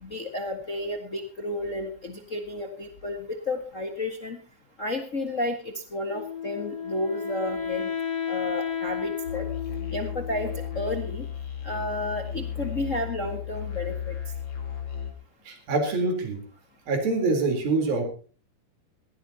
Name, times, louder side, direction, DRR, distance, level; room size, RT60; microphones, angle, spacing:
voice 1, 0.0-4.4 4.8-5.6 5.9-7.9 8.3-9.4 9.9-10.5 10.7-11.2 11.6-14.1, left 2 dB, 60° left, 5 dB, 0.8 m, -31 dB
Wind instrument woodwind instrument, 6.1-11.2, left 7 dB, 20° left, 1.4 m, -33 dB
Musical instrument, 9.2-15.1, left 8 dB, 35° left, 3.9 m, -34 dB
voice 2, 15.5-16.4 16.9-18.1, right 3 dB, 70° right, 5 dB, 5.6 m, -25 dB
19.0 x 17.0 x 2.9 m, 0.39 s
omnidirectional pair, 4.3 m